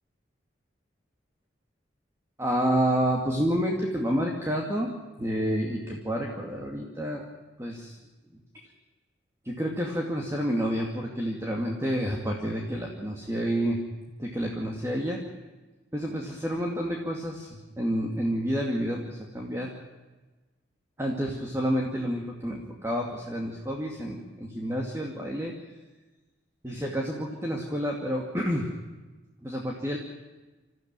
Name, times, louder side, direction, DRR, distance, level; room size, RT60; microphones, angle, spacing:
voice 1, 2.4-7.3 7.6-8.0 9.4-13.8 14.2-15.2 15.9-19.8 21.0-25.5 26.6-28.7 29.4-30.0, equal, 15° right, 0 dB, 2.3 m, -29 dB
27.0 x 15.0 x 9.1 m, 1.2 s
head